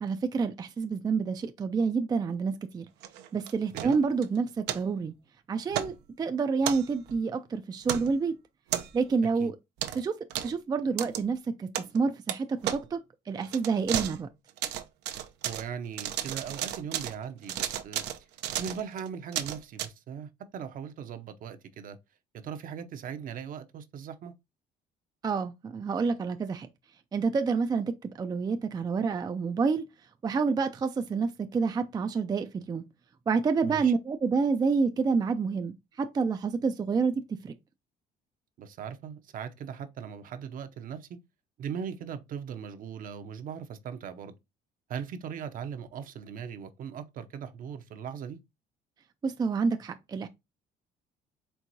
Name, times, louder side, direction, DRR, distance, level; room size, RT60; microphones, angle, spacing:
voice 1, 0.0-2.9 3.3-5.1 5.5-8.4 8.9-9.5 9.9-10.2 10.4-11.7 11.9-13.0 13.3-14.3 25.2-26.7 27.1-29.9 30.2-32.8 33.3-37.5 49.2-50.3, right 5 dB, 25° right, 0.4 m, -28 dB
sound 1, 3.0-4.3 4.7-4.8 5.7-5.9 6.6-7.2 7.8-8.1 8.7-9.1 9.8-10.0 10.3-10.5 11.0-11.2 11.7-12.0 12.3-12.4 12.6-12.8 13.4-14.2 14.5-15.7 16.0-17.2 17.4-19.9, right 11 dB, 90° right, 0.7 m, -33 dB
voice 2, 15.4-18.0 18.6-22.0 22.4-24.3 33.6-33.9 38.6-41.1 41.6-44.3 44.9-48.4, right 7 dB, 55° right, 0.7 m, -39 dB
4.6 x 3.5 x 2.6 m
cardioid pair, 110°, 17 cm